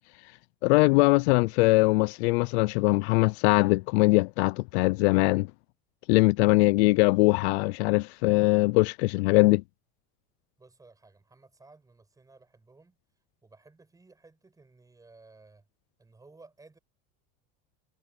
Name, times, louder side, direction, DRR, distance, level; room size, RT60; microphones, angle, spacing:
voice 1, 0.6-5.5 6.1-9.6, left 24 dB, 90° left, 0.5 m, -22 dB
voice 2, 10.6-13.0 13.4-15.7 16.0-16.8, right 3 dB, 10° right, 6.0 m, -56 dB
cardioid pair, 140°, 31 cm